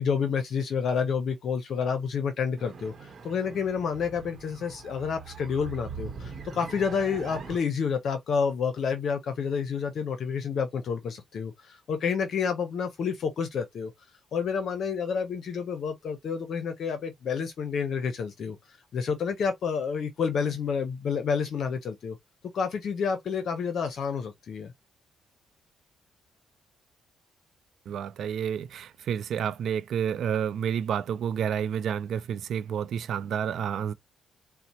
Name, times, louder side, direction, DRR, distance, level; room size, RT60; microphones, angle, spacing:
voice 1, 0.0-13.9 14.3-22.2 22.5-24.7, left 6 dB, 60° left, 0.6 m, -29 dB
sound 1, 2.6-7.6, right 5 dB, 50° right, 0.9 m, -42 dB
voice 2, 27.9-33.9, right 8 dB, 70° right, 0.4 m, -30 dB
4.1 x 2.0 x 2.7 m
cardioid pair, 90°, 0 cm